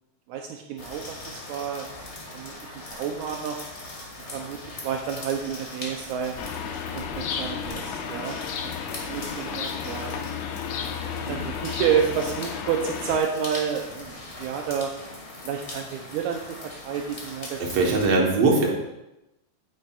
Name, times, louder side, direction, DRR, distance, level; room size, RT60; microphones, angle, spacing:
voice 1, 0.3-1.9 2.3-3.6 4.3-6.4 6.9-8.7 9.1-10.2 10.9-14.9 15.4-17.6, right 7 dB, 80° right, 2 dB, 1.9 m, -30 dB
sound 1, 0.8-18.1, left 2 dB, 45° left, 0.8 m, -40 dB
sound 2, 6.4-13.2, left 7 dB, 80° left, 1.5 m, -33 dB
voice 2, 17.6-18.8, right 3 dB, 60° right, 0 dB, 2.0 m, -21 dB
9.0 x 8.8 x 2.3 m, 0.92 s
omnidirectional pair, 3.7 m